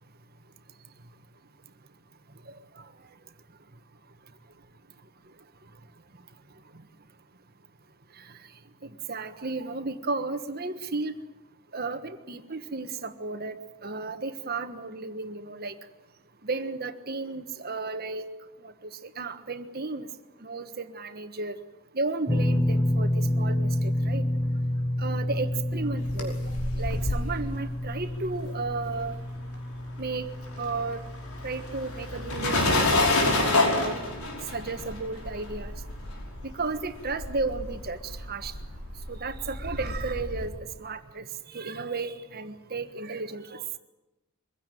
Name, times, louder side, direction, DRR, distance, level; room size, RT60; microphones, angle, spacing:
voice 1, 9.1-11.1 11.7-13.6 13.8-15.7 16.4-18.2 18.6-20.1 20.4-21.6 21.9-24.2 25.0-26.3 26.7-29.2 30.0-30.3 30.6-31.0 31.4-34.0 34.5-35.7 36.4-38.5 39.1-40.5 40.8-41.2 41.5-43.6, right 3 dB, 45° right, 9 dB, 1.4 m, -33 dB
sound 1, 22.3-34.5 34.8-35.0 36.7-36.8, left 1 dB, 10° left, 0.8 m, -30 dB
sound 2, 25.8-29.5 29.7-40.5, left 2 dB, 90° left, 5.2 m, -29 dB
23.5 x 16.5 x 9.2 m, 1.0 s
head